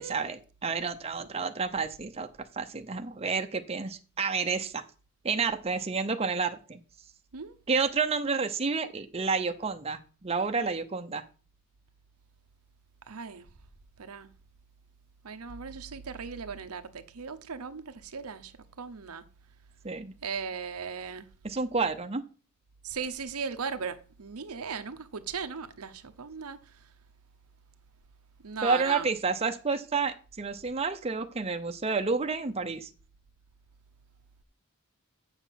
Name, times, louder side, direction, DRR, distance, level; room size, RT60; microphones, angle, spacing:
voice 1, 0.0-2.3 2.5-4.8 5.2-6.8 7.7-11.2 19.8-20.1 21.4-22.2 28.6-32.9, right 4 dB, 25° right, 0.7 m, -30 dB
voice 2, 13.1-13.4 14.0-14.3 15.2-16.8 17.1-17.8 18.1-18.5 18.8-19.2 20.2-21.3 22.9-26.6 28.4-29.1, right 5 dB, 85° right, 0.9 m, -37 dB
8.0 x 7.2 x 5.8 m
head